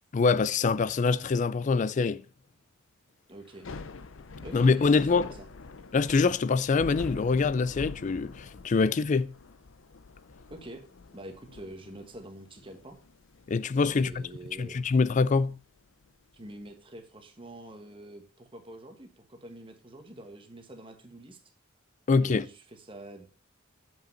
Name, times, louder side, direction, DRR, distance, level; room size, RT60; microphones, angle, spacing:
voice 1, 0.1-2.2 4.5-5.3 5.9-9.3 13.5-14.1 14.6-15.5 22.1-22.4, left 4 dB, 35° left, 0.3 m, -24 dB
voice 2, 3.3-3.7 4.4-5.5 10.5-10.8 11.1-13.0 13.9-14.8 16.3-21.4 22.2-23.3, right 1 dB, 25° right, 1.3 m, -46 dB
Thunder / Rain, 3.5-16.6, left 4 dB, 70° left, 0.7 m, -46 dB
7.7 x 5.4 x 5.3 m
head